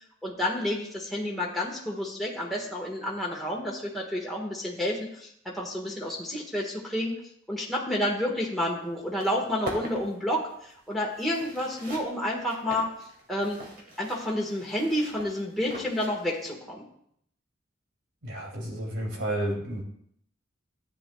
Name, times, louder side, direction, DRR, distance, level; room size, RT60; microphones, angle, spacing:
voice 1, 0.2-7.1 7.5-10.4 10.9-12.9 13.3-13.6 14.0-16.8, left 1 dB, ahead, -4 dB, 1.5 m, -30 dB
sound 1, 8.6-8.7 9.0-16.5, right 1 dB, 50° right, 2.3 m, -42 dB
voice 2, 18.2-19.8, right 1 dB, 90° right, 0 dB, 2.8 m, -31 dB
14.5 x 8.8 x 2.3 m, 0.70 s
head